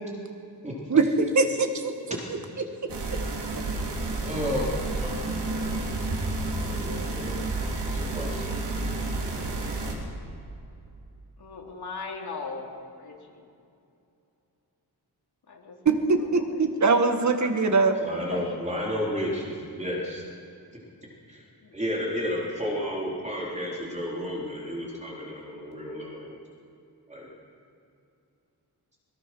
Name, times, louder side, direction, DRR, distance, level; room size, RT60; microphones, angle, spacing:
voice 1, 0.9-2.2 15.8-17.9, right 4 dB, 45° right, 6 dB, 1.7 m, -22 dB
sound 1, 2.9-9.9, right 2 dB, 80° right, 3.7 m, -30 dB
voice 2, 4.2-4.7 5.0-6.0 6.4-7.3 7.8-8.6 18.0-20.2 21.3-21.4 21.7-26.3 27.1-27.3, equal, 15° right, -4 dB, 4.1 m, -32 dB
voice 3, 11.4-13.5 15.5-16.7 18.3-19.2 21.6-21.8 26.2-26.4, left 4 dB, 65° left, -1 dB, 3.6 m, -40 dB
21.0 x 21.0 x 6.2 m, 2.6 s
wide cardioid pair, 150°, 41 cm